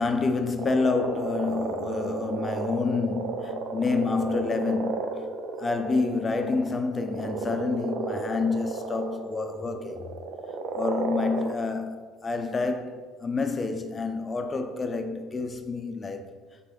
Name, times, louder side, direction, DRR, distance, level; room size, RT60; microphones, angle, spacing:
voice 1, 0.0-5.2 5.6-10.0 10.7-11.9 12.2-16.3, left 4 dB, 25° left, 0.7 m, -28 dB
sound 1, 0.6-11.5, right 4 dB, 50° right, 0.6 m, -33 dB
6.8 x 3.5 x 4.5 m
hypercardioid pair, 65°, 0 cm